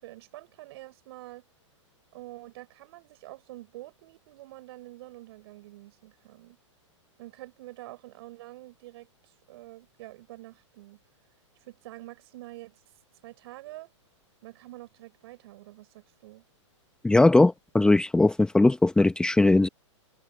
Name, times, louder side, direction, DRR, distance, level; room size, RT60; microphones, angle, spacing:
voice 1, 0.0-1.4 2.1-6.6 7.2-11.0 11.7-12.8 13.2-13.9 14.4-16.4, right 17 dB, 55° right, 6.5 m, -46 dB
voice 2, 17.0-19.7, left 2 dB, 5° left, 1.0 m, -20 dB
hypercardioid pair, 125°, 16 cm